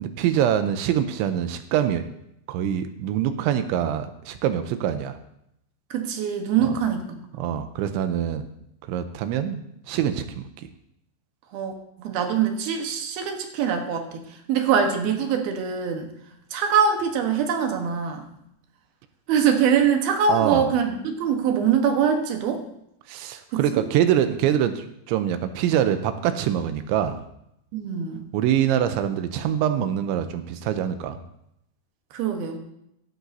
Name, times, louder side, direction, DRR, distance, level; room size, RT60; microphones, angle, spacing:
voice 1, 0.0-2.1 2.5-5.2 6.6-6.7 7.4-8.5 8.9-9.6 9.9-10.7 20.3-20.7 23.1-27.2 28.3-31.2, right 10 dB, 85° right, 9 dB, 3.0 m, -24 dB
voice 2, 5.9-7.6 11.5-11.7 12.0-16.1 16.5-18.2 19.3-22.6 23.5-23.8 27.7-28.3 32.1-32.6, right 7 dB, 70° right, 4 dB, 2.6 m, -23 dB
16.0 x 12.5 x 2.7 m, 0.78 s
omnidirectional pair, 5.4 m